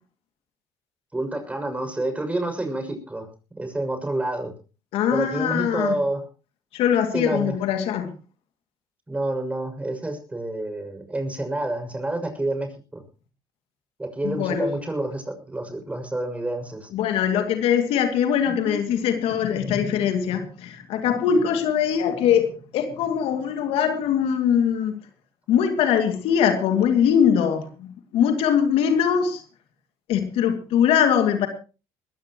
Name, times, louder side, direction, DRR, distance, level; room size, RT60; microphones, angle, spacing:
voice 1, 1.1-3.3 3.6-4.5 5.1-6.2 7.1-7.5 9.1-13.0 14.0-16.9 18.5-18.8, right 2 dB, 15° right, 6 dB, 6.4 m, -28 dB
voice 2, 4.9-5.9 6.7-8.1 14.2-14.7 16.9-25.0 25.5-29.4 30.1-31.5, left 8 dB, 70° left, 7 dB, 2.4 m, -22 dB
21.0 x 15.5 x 3.0 m, 0.34 s
supercardioid pair, 85°, 10 cm